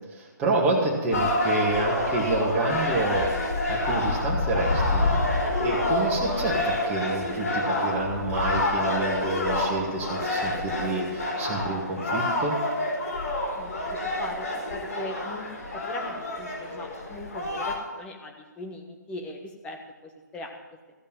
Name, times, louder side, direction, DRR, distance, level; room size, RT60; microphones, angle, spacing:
voice 1, 0.1-5.2 5.6-12.6, right 2 dB, 15° right, -4 dB, 2.1 m, -28 dB
sound 1, 1.1-17.7, left 2 dB, 60° left, 3.9 m, -27 dB
voice 2, 13.6-15.5 15.7-20.6, left 2 dB, 10° left, 2 dB, 1.3 m, -39 dB
15.0 x 5.3 x 9.1 m, 1.2 s
figure-of-eight pair, 140°, 10 cm